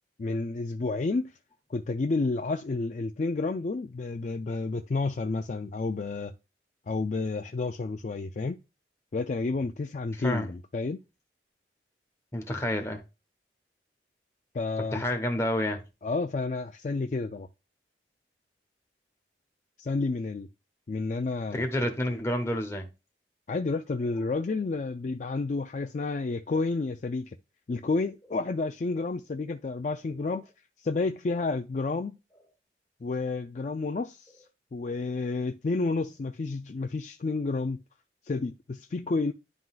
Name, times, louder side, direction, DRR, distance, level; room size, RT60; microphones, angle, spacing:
voice 1, 0.2-1.3 1.7-6.3 6.9-8.6 9.1-11.0 14.5-15.0 16.0-17.5 19.8-20.5 20.9-21.6 23.5-27.4 27.7-30.4 30.8-32.2 33.0-34.4 34.7-37.8 38.2-39.3, left 3 dB, 40° left, 0.4 m, -30 dB
voice 2, 10.1-10.5 12.3-13.0 14.8-15.8 21.5-22.9, left 1 dB, 15° left, 1.0 m, -29 dB
10.5 x 3.8 x 2.4 m
head